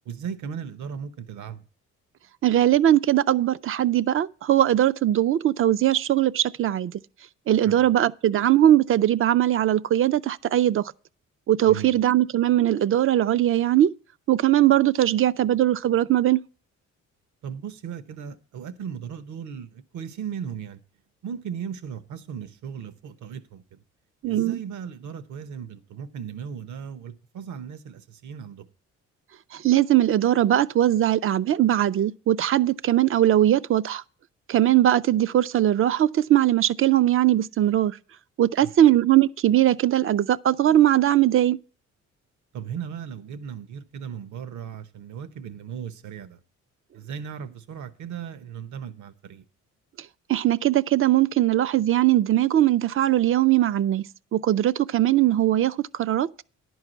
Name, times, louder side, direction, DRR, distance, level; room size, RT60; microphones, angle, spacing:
voice 1, 0.0-1.6 7.7-8.0 11.7-12.0 17.4-20.8 21.2-23.8 24.3-28.7 38.6-38.9 42.5-46.4 46.9-49.4, right 7 dB, 75° right, 1.0 m, -37 dB
voice 2, 2.4-6.9 7.5-10.9 11.5-13.9 14.3-16.4 24.2-24.6 29.5-34.0 34.5-38.0 38.4-41.6 50.3-56.4, right 12 dB, 45° right, 0.4 m, -20 dB
10.5 x 4.7 x 7.9 m
cardioid pair, 90°, 30 cm